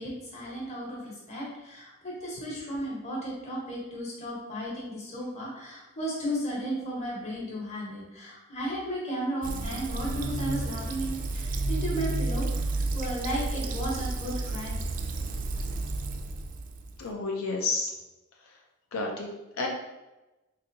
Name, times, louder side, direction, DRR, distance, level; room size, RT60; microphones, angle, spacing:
voice 1, 0.0-14.8, equal, 35° left, -5 dB, 1.1 m, -34 dB
Fill (with liquid), 9.4-17.1, right 2 dB, 40° right, 0.3 m, -31 dB
voice 2, 17.0-17.9 18.9-19.3 19.6-19.7, left 3 dB, 90° left, 0 dB, 0.5 m, -30 dB
4.1 x 2.6 x 2.6 m, 1.0 s
head